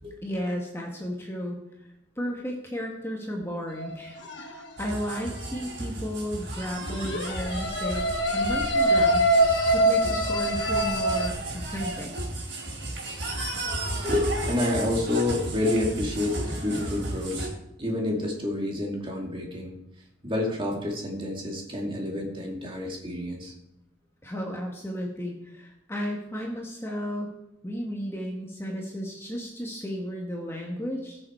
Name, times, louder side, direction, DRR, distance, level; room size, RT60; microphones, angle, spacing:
voice 1, 0.2-1.6 2.2-9.3 9.7-12.4 24.2-27.4 27.6-31.2, equal, 15° left, 0 dB, 1.4 m, -34 dB
sound 1, 3.8-4.5 6.8-11.3, right 1 dB, 70° left, 1.4 m, -24 dB
sound 2, 4.8-17.5, right 1 dB, 70° right, 3.9 m, -34 dB
voice 2, 13.8-17.5 17.8-19.7 20.2-23.5, left 1 dB, 25° right, 0 dB, 2.4 m, -29 dB
19.5 x 6.9 x 4.4 m, 0.83 s
head